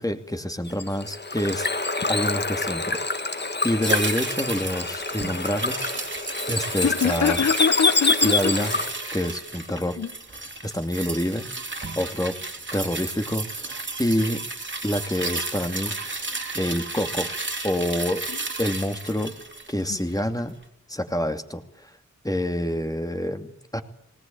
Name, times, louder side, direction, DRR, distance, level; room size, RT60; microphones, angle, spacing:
voice 1, 0.0-1.7 2.1-6.1 6.5-7.4 8.2-8.8 9.1-10.0 10.3-11.5 12.0-12.4 12.7-14.4 14.8-17.3 17.6-18.2 18.6-19.3 19.7-20.5 20.9-21.9 22.2-23.8, equal, 10° left, 2.6 m, -27 dB
Bird / Water, 0.7-9.1, left 3 dB, 35° left, 1.9 m, -26 dB
sound 1, 3.8-20.3 20.6-20.7, right 3 dB, 40° right, 3.4 m, -33 dB
voice 2, 6.8-8.5 10.0-10.1, left 6 dB, 60° left, 1.0 m, -23 dB
20.0 x 19.0 x 8.9 m
wide cardioid pair, 60°, 31 cm